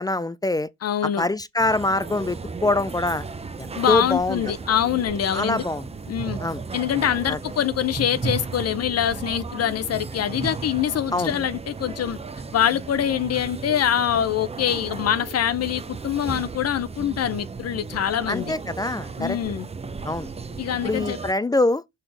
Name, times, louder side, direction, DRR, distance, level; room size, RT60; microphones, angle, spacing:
voice 1, 0.0-0.7 1.2-3.3 3.6-4.5 5.3-5.9 6.4-6.6 7.3-7.4 11.1-11.3 18.3-19.4 20.0-20.3 20.8-21.8, left 2 dB, 15° left, 0.3 m, -24 dB
voice 2, 0.8-1.2 3.8-5.6 6.1-6.4 6.7-12.2 12.5-18.6 19.2-19.7 20.6-21.2, left 10 dB, 55° left, 0.6 m, -24 dB
sound 1, 1.6-21.3, right 4 dB, 20° right, 0.7 m, -35 dB
6.4 x 4.0 x 3.9 m
cardioid pair, 90°, 30 cm